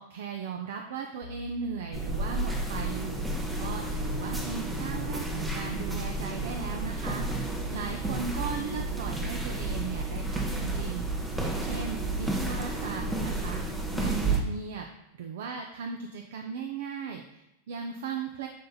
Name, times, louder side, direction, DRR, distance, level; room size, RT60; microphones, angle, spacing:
voice 1, 0.0-14.9 15.1-18.5, right 6 dB, 55° right, 3 dB, 0.3 m, -37 dB
sound 1, 1.2-10.9 11.3-11.4 11.9-12.1, equal, 60° left, 0.9 m, -51 dB
sound 2, 1.9-14.4, right 2 dB, 5° right, 0.6 m, -31 dB
5.2 x 3.7 x 2.3 m, 0.87 s
figure-of-eight pair, 90°, 0 cm